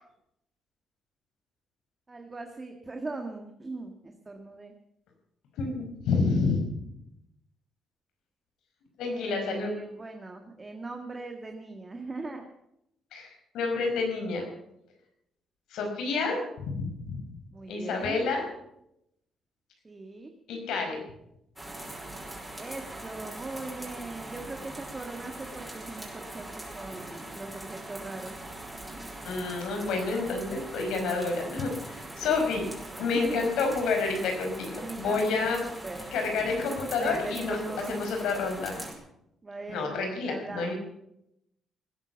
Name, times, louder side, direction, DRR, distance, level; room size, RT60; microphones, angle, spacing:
voice 1, 2.1-4.7 9.1-12.4 17.5-18.2 19.9-20.3 22.6-26.5 26.7-28.4 32.9-33.5 34.8-35.5 35.8-36.1 36.5-38.0 39.4-40.7, right 3 dB, 25° right, 4 dB, 1.8 m, -40 dB
voice 2, 5.6-6.6 9.0-9.7 13.1-14.4 15.7-17.2 17.7-18.4 20.5-21.0 29.2-32.6 33.0-35.6 36.1-38.8 39.7-40.7, left 4 dB, 85° left, 3 dB, 5.1 m, -29 dB
sound 1, 21.6-38.9, right 1 dB, 5° right, 5.3 m, -42 dB
18.5 x 10.5 x 7.1 m, 0.80 s
cardioid pair, 90°, 0 cm